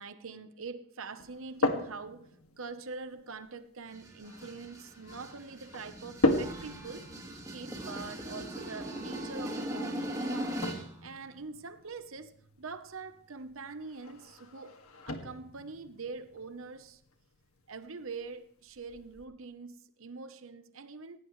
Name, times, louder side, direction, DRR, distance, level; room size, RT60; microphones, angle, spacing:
voice 1, 0.0-2.3 2.6-7.1 7.5-14.8 15.1-17.0 17.7-21.2, right 4 dB, 75° right, 11 dB, 1.0 m, -44 dB
sound 1, 1.2-19.2, left 1 dB, 85° left, 2.1 m, -38 dB
sound 2, 3.9-10.9, equal, 15° right, 2.7 m, -39 dB
19.5 x 17.0 x 3.2 m, 0.64 s
head